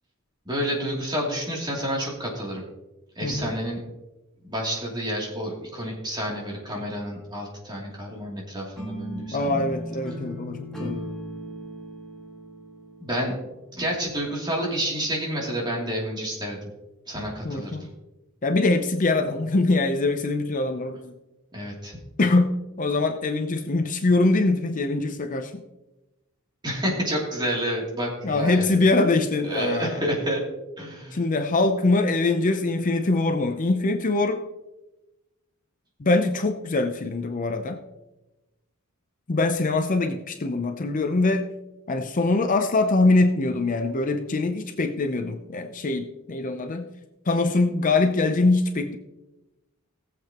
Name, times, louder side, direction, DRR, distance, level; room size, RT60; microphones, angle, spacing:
voice 1, 0.4-2.6 3.2-3.8 4.4-9.6 13.0-13.3 13.8-16.7 17.1-17.9 21.5-22.0 26.6-28.6 29.4-30.4 30.8-31.2, equal, 20° right, -3 dB, 2.8 m, -29 dB
sound 1, 8.8-13.9, equal, ahead, 1.8 m, -37 dB
voice 2, 9.3-11.0 17.4-17.9 18.4-21.1 22.2-25.6 28.2-30.0 31.1-34.4 36.0-37.8 39.3-41.4 41.9-46.9 47.3-49.0, left 2 dB, 35° left, 6 dB, 0.6 m, -23 dB
17.5 x 7.7 x 2.9 m, 1.0 s
head